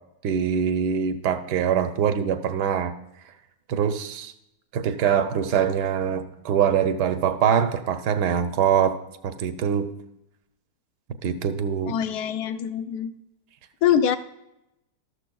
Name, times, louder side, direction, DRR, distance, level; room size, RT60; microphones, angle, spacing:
voice 1, 0.2-2.9 3.7-4.3 4.7-9.9 11.2-11.9, right 8 dB, 90° right, 8 dB, 1.3 m, -23 dB
voice 2, 11.9-13.1 13.8-14.2, left 9 dB, 75° left, 10 dB, 1.2 m, -23 dB
13.0 x 12.5 x 2.3 m, 0.85 s
omnidirectional pair, 1.7 m